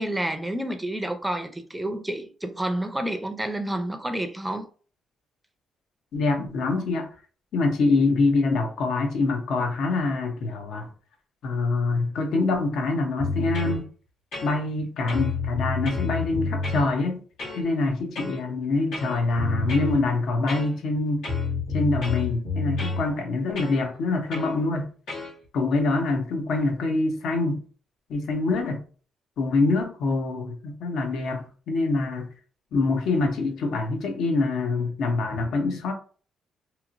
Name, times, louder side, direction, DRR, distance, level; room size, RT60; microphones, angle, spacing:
voice 1, 0.0-4.7, right 1 dB, 10° right, 0.4 m, -29 dB
voice 2, 6.1-7.1 7.5-10.9 11.4-13.9 14.4-17.2 17.6-21.2 21.7-24.9 25.5-27.6 28.1-28.8 29.4-32.3 32.7-35.9, left 3 dB, 75° left, 0.7 m, -25 dB
sound 1, 13.2-13.8 14.3-14.8 15.1-16.9 17.4-17.6 18.2-18.4 18.9-20.0 20.5-20.9 21.2-23.0 23.6-23.8 24.3-24.5 25.1-25.3, left 3 dB, 90° left, 1.4 m, -29 dB
2.9 x 2.9 x 2.5 m
cardioid pair, 90°, 0 cm